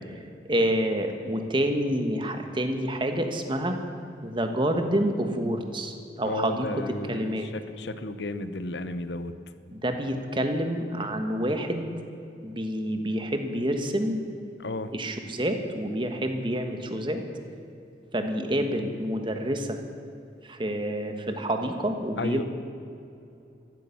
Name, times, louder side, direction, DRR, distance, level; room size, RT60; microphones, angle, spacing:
voice 1, 0.4-3.8 4.2-7.5 9.7-11.9 12.4-14.2 14.9-17.2 18.1-19.8 20.4-22.4, right 1 dB, 30° right, 6 dB, 1.4 m, -28 dB
voice 2, 6.2-9.3 14.6-14.9 22.2-22.4, left 2 dB, 80° left, 12 dB, 0.9 m, -33 dB
14.5 x 12.5 x 7.2 m, 2.7 s
head